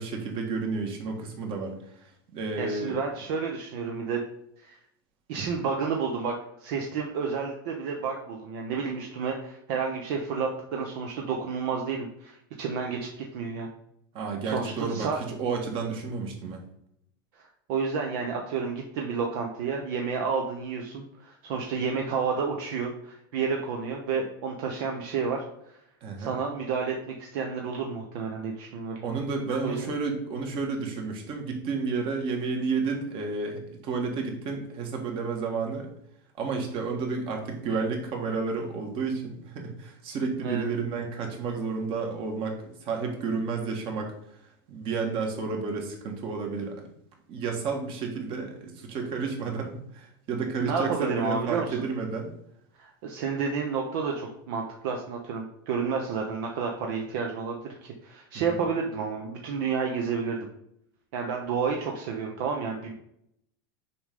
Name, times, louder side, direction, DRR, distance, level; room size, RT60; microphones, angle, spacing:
voice 1, 0.0-1.8 2.3-3.0 14.1-16.6 26.0-26.4 29.0-35.9 36.4-44.1 44.7-46.8 47.3-52.3 58.3-58.4, right 4 dB, 45° right, 2 dB, 1.7 m, -31 dB
voice 2, 2.6-4.2 4.6-4.8 5.3-6.3 6.6-13.7 14.4-15.2 17.7-25.7 26.2-29.0 29.6-29.9 40.4-40.6 50.6-51.8 52.8-60.5 61.1-62.9, right 5 dB, 65° right, 1 dB, 1.0 m, -30 dB
6.8 x 5.2 x 3.7 m, 0.75 s
supercardioid pair, 125°, 13 cm